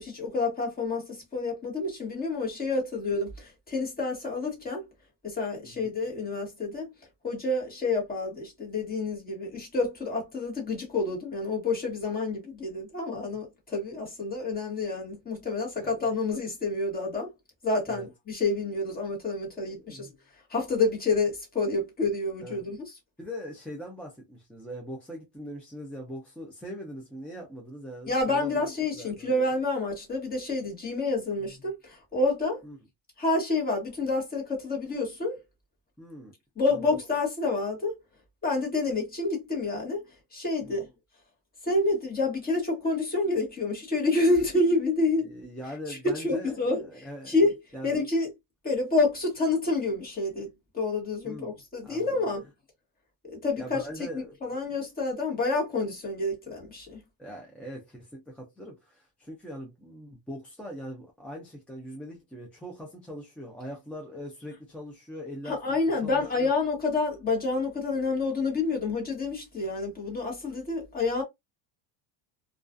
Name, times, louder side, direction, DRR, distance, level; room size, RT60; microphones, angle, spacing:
voice 1, 0.0-4.8 5.2-6.9 7.2-17.3 17.6-23.0 28.1-32.6 33.2-35.4 36.6-38.0 38.4-40.9 41.6-45.2 45.9-48.3 48.6-52.5 53.3-57.0 65.4-71.2, left 3 dB, 20° left, 1.1 m, -28 dB
voice 2, 19.5-20.1 22.4-22.6 23.2-28.7 29.0-29.3 32.6-32.8 36.0-36.3 36.7-36.9 40.6-40.8 45.2-47.3 47.7-47.9 51.2-52.3 53.6-54.3 57.2-65.6 66.0-66.5, equal, 5° left, 0.3 m, -41 dB
2.3 x 2.3 x 2.4 m
cardioid pair, 140°, 44 cm